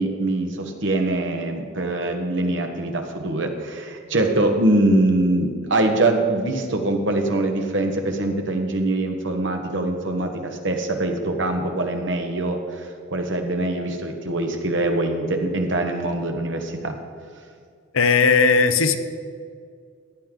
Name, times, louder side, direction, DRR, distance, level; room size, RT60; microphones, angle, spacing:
voice 1, 0.0-12.6 13.1-16.9, right 2 dB, 60° right, 4 dB, 1.2 m, -23 dB
voice 2, 17.9-19.0, left 5 dB, 75° left, 9 dB, 0.7 m, -17 dB
14.5 x 9.6 x 3.8 m, 2.2 s
head